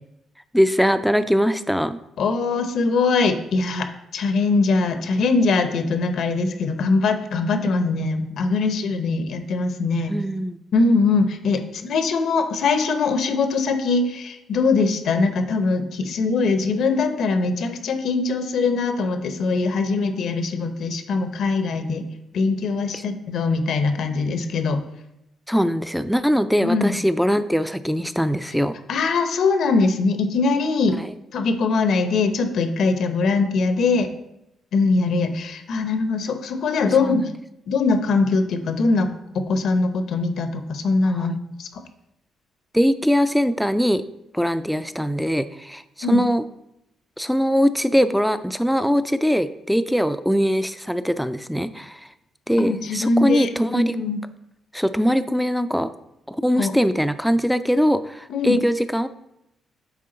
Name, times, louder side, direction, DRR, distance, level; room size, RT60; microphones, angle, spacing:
voice 1, 0.5-2.0 10.1-10.6 22.9-23.0 25.5-28.7 31.0-31.1 37.0-37.2 41.1-41.4 42.7-44.0 44.3-45.8 46.1-46.4 47.2-52.0 52.5-54.0 54.7-55.9 56.3-59.1, equal, ahead, 12 dB, 0.4 m, -21 dB
voice 2, 2.2-3.9 4.1-10.1 10.7-22.1 22.3-24.8 26.6-27.0 28.9-31.0 31.3-34.1 34.7-37.2 37.7-39.1 39.3-41.7 46.0-46.2 52.6-54.2 56.6-56.7 58.3-58.6, left 3 dB, 70° left, 8 dB, 0.8 m, -22 dB
9.3 x 3.6 x 3.9 m, 0.85 s
cardioid pair, 90°, 0 cm